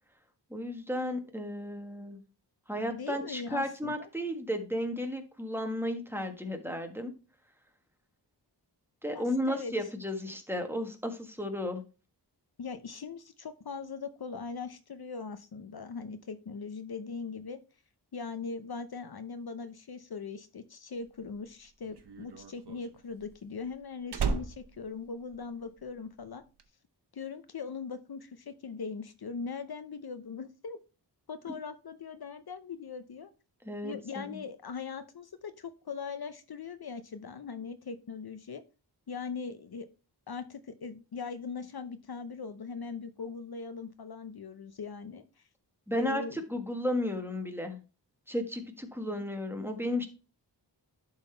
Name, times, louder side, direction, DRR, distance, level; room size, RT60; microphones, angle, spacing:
voice 1, 0.5-2.2 2.7-7.1 9.0-11.8 33.6-34.4 45.9-47.8 48.3-50.1, left 1 dB, 5° right, 5 dB, 1.4 m, -34 dB
voice 2, 2.8-4.1 9.1-9.7 12.6-17.6 18.1-26.4 27.1-30.8 31.3-33.3 33.8-38.6 39.1-39.9 40.3-45.2 45.9-46.4, left 5 dB, 60° left, 11 dB, 0.8 m, -40 dB
Slam, 21.1-25.9 26.2-26.6, right 5 dB, 65° right, 1.0 m, -36 dB
11.0 x 4.0 x 4.4 m, 0.33 s
wide cardioid pair, 85°, 43 cm